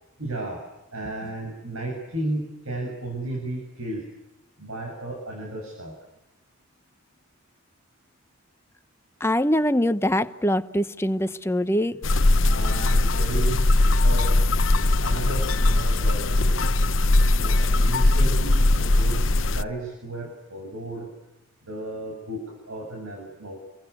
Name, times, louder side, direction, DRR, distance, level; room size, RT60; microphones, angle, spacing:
voice 1, 0.2-0.6 0.9-4.0 4.6-5.9 12.4-13.8 14.0-14.4 15.0-16.7 17.4-21.1 21.6-23.6, right 2 dB, 90° right, 1 dB, 7.5 m, -34 dB
voice 2, 9.2-12.0, equal, 10° left, 11 dB, 0.9 m, -23 dB
sound 1, 12.0-19.6, left 2 dB, 65° left, 0.9 m, -20 dB
29.5 x 23.5 x 8.3 m, 0.93 s
head